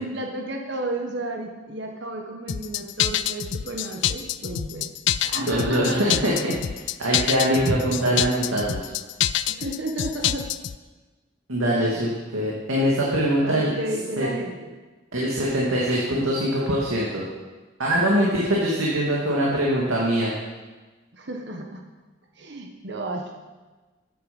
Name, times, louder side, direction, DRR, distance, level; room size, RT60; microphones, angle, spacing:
voice 1, 0.0-4.9 5.2-6.1 9.5-10.5 11.7-12.0 13.4-14.8 21.1-21.9 22.4-23.3, right 1 dB, 55° right, 2 dB, 1.3 m, -32 dB
sound 1, 2.5-10.8, left 11 dB, 60° left, 0.4 m, -26 dB
voice 2, 5.4-8.9 11.5-13.7 14.2-14.3 15.1-17.2 17.8-20.3, equal, 85° right, -5 dB, 2.3 m, -23 dB
13.5 x 9.3 x 5.4 m, 1.3 s
head